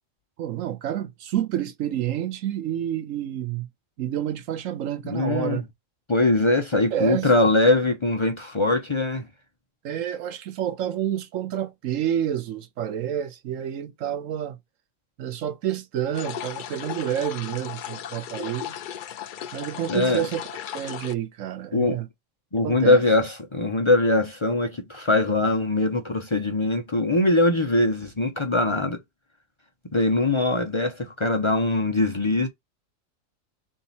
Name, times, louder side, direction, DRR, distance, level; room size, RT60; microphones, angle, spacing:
voice 1, 0.4-3.7 4.0-5.6 6.9-7.3 9.8-14.6 15.2-18.8 19.5-20.5 20.7-22.1 22.6-23.0, right 10 dB, 85° right, 1.1 m, -29 dB
voice 2, 5.0-5.6 6.1-9.3 19.9-20.3 21.7-22.0 22.5-29.0 29.9-32.5, left 2 dB, 25° left, 0.7 m, -22 dB
sound 1, 16.1-21.1, left 9 dB, 65° left, 0.5 m, -36 dB
3.6 x 2.7 x 4.0 m
omnidirectional pair, 1.3 m